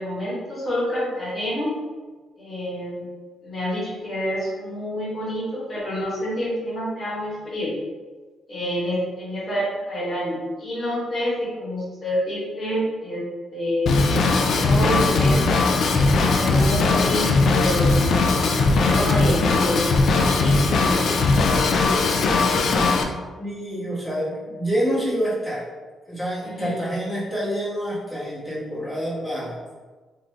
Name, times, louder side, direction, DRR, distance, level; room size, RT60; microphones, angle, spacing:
voice 1, 0.0-1.7 2.4-3.0 3.4-7.8 8.5-13.2 13.5-13.9 14.6-15.4 16.0-18.0 18.7-21.0 26.4-26.8, equal, 35° left, -7 dB, 1.2 m, -28 dB
Drum kit / Drum, 13.9-23.0, left 3 dB, 65° left, 0.3 m, -19 dB
voice 2, 23.4-25.7 26.1-29.6, equal, 5° left, -10 dB, 1.3 m, -27 dB
2.6 x 2.5 x 3.2 m, 1.4 s
cardioid pair, 115°, 0 cm